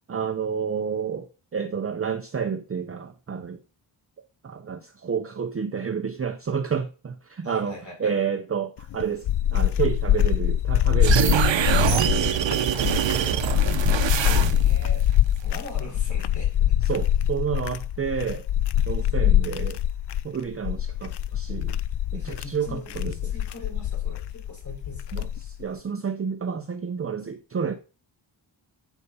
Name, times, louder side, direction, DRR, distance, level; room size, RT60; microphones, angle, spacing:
voice 1, 0.1-3.6 4.4-9.3 9.5-12.6 16.9-18.4 18.9-19.8 20.2-21.8 22.1-23.1 25.1-27.8, right 6 dB, 30° right, 0.6 m, -30 dB
voice 2, 7.4-8.1 13.0-15.1 15.3-16.5 22.1-25.1, left 2 dB, 35° left, 5.0 m, -42 dB
sound 1, 8.8-25.6, left 11 dB, 60° left, 0.5 m, -24 dB
sound 2, 11.0-14.9, right 9 dB, 65° right, 0.8 m, -24 dB
8.2 x 8.0 x 5.5 m
wide cardioid pair, 150°, 47 cm